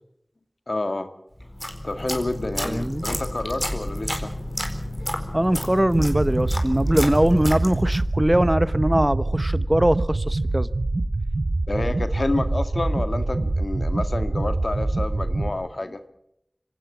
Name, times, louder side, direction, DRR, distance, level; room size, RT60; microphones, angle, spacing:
voice 1, 0.7-1.1 1.8-4.3 11.7-16.0, left 2 dB, 70° left, 1.9 m, -29 dB
sound 1, 1.4-8.1, left 1 dB, 15° left, 4.2 m, -31 dB
voice 2, 2.6-3.0 5.3-10.7, right 1 dB, 20° right, 1.0 m, -21 dB
sound 2, 5.9-15.5, right 2 dB, 75° right, 1.2 m, -25 dB
25.5 x 17.0 x 7.4 m
wide cardioid pair, 50°, 0 cm